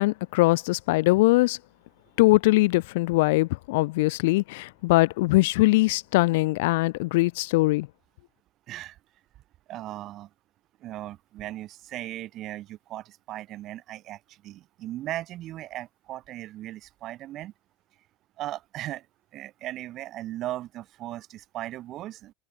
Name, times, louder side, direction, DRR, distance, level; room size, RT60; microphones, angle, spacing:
voice 1, 0.0-1.6 2.2-7.9, left 21 dB, 70° left, 0.5 m, -21 dB
voice 2, 9.7-10.3 10.8-17.5 18.4-19.1 19.3-22.3, right 14 dB, 45° right, 4.9 m, -37 dB
supercardioid pair, 115°, 0 cm